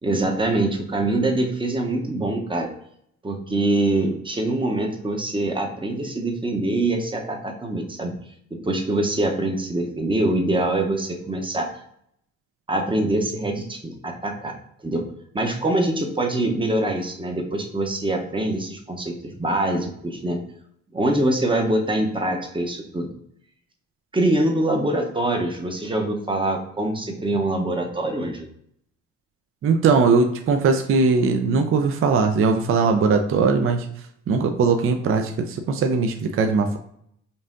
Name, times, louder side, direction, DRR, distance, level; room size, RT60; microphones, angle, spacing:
voice 1, 0.0-2.7 3.2-8.1 8.5-11.7 12.7-14.5 14.8-15.1 15.3-20.4 20.9-23.1 24.1-28.5, right 1 dB, 15° right, 2 dB, 0.8 m, -24 dB
voice 2, 29.6-33.9 34.3-36.8, right 4 dB, 45° right, 5 dB, 0.5 m, -20 dB
5.4 x 2.6 x 2.5 m, 0.71 s
cardioid pair, 90°, 30 cm